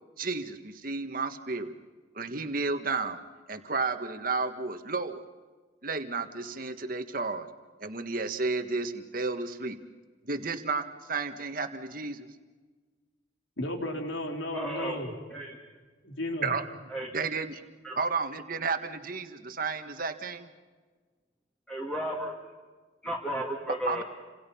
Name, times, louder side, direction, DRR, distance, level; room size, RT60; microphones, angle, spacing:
voice 1, 0.2-1.7 2.1-3.2 3.5-5.2 5.8-7.5 7.8-9.8 10.2-12.3 16.4-16.6 17.1-17.6 17.9-20.5 23.9-24.0, right 4 dB, 45° right, 8 dB, 1.6 m, -32 dB
voice 2, 13.6-15.1 16.0-16.5, left 1 dB, 75° left, 3 dB, 4.0 m, -33 dB
voice 3, 14.5-15.0 15.3-15.6 16.9-17.1 17.8-18.0 21.7-22.4 23.0-24.0, equal, 5° left, -2 dB, 2.3 m, -34 dB
29.5 x 26.5 x 5.7 m, 1.4 s
head